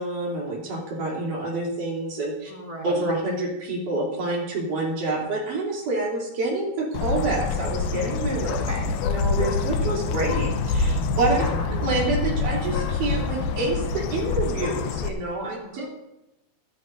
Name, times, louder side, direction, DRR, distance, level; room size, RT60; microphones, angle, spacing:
voice 1, 0.0-2.5 2.8-8.5 9.0-11.4 11.7-15.8, right 2 dB, 50° right, -3 dB, 4.3 m, -27 dB
voice 2, 2.5-3.1 8.5-8.9 11.3-11.7 15.6-15.9, equal, 10° right, -2 dB, 2.0 m, -36 dB
Bird, 6.9-15.1, left 4 dB, 75° left, 2.3 m, -26 dB
24.5 x 9.5 x 2.6 m, 0.93 s
omnidirectional pair, 4.8 m